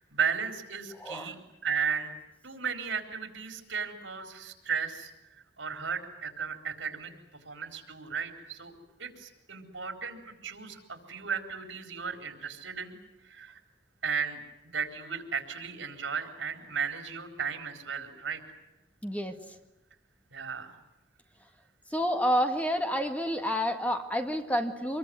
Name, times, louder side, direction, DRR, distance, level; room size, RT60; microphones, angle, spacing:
voice 1, 0.0-1.4 1.6-2.1 2.4-5.1 5.6-7.1 7.4-8.7 9.0-13.0 13.2-13.6 14.0-14.4 14.7-18.4 20.3-20.7, right 6 dB, 80° right, 6 dB, 4.2 m, -35 dB
voice 2, 1.0-1.4 19.0-19.3 21.9-25.0, equal, 10° left, 6 dB, 1.8 m, -29 dB
25.5 x 22.5 x 9.5 m, 0.96 s
head